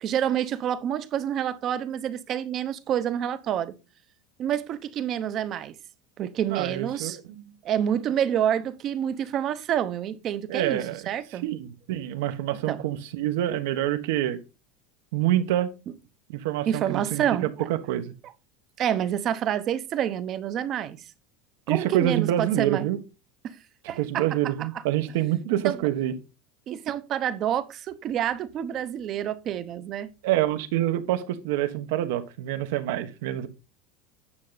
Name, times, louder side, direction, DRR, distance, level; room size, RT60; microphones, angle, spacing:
voice 1, 0.0-3.7 4.4-5.8 6.2-7.2 7.6-11.5 12.7-12.8 16.7-17.7 18.2-18.3 18.8-21.0 21.7-22.9 23.4-23.6 23.9-24.3 24.6-24.7 25.6-25.8 26.7-30.1, right 10 dB, 35° right, 0.8 m, -28 dB
voice 2, 6.5-7.5 10.5-11.0 11.4-14.4 15.1-15.7 16.3-17.2 17.7-18.1 21.7-23.0 24.0-26.1 30.2-33.5, right 13 dB, 75° right, 1.3 m, -26 dB
9.6 x 6.4 x 4.1 m
supercardioid pair, 155°, 0 cm